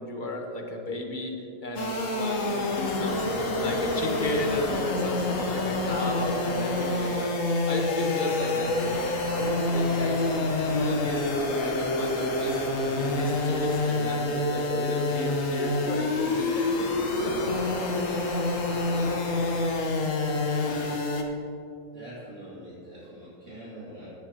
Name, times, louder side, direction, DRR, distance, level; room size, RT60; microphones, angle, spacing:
voice 1, 0.0-1.3 1.6-3.3 3.6-7.3 7.6-10.2 10.6-11.2 11.6-12.6 12.9-17.5, left 1 dB, 35° left, 1 dB, 1.1 m, -34 dB
sound 1, 1.8-21.2, left 2 dB, 55° left, 1.4 m, -27 dB
sound 2, 7.1-9.8, left 3 dB, 75° left, 1.8 m, -48 dB
voice 2, 21.9-24.1, right 1 dB, 45° right, -11 dB, 3.1 m, -44 dB
16.0 x 9.6 x 2.9 m, 2.7 s
omnidirectional pair, 1.7 m